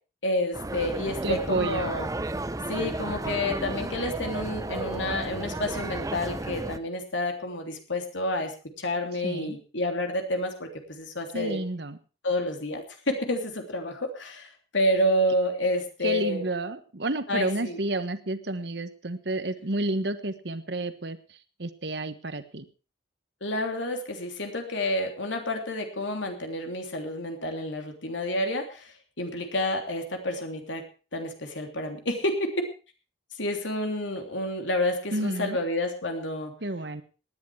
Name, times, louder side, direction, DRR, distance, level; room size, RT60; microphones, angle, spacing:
voice 1, 0.2-2.1 2.7-8.5 8.8-11.6 12.2-16.4 17.3-17.8 23.4-30.8 31.1-32.6 33.4-36.5, left 1 dB, 80° left, 4 dB, 3.1 m, -29 dB
sound 1, 0.5-6.8, right 2 dB, 15° right, 0.6 m, -33 dB
voice 2, 1.2-1.9 9.2-9.6 11.3-12.0 16.0-22.7 35.1-35.6 36.6-37.0, right 2 dB, 60° right, 11 dB, 1.3 m, -30 dB
18.0 x 10.5 x 4.7 m, 0.35 s
head